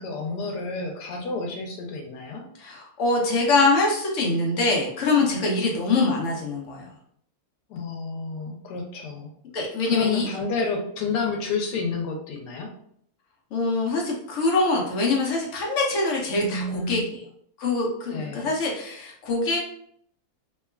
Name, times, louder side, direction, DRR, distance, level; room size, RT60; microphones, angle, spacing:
voice 1, 0.0-2.5 7.7-9.3 9.9-12.7 16.4-17.1 18.1-18.5, left 3 dB, 90° left, 2 dB, 1.2 m, -30 dB
voice 2, 2.6-6.9 9.5-10.3 13.5-17.0 17.6-19.6, left 3 dB, 60° left, -1 dB, 0.9 m, -24 dB
2.9 x 2.3 x 2.2 m, 0.67 s
omnidirectional pair, 1.7 m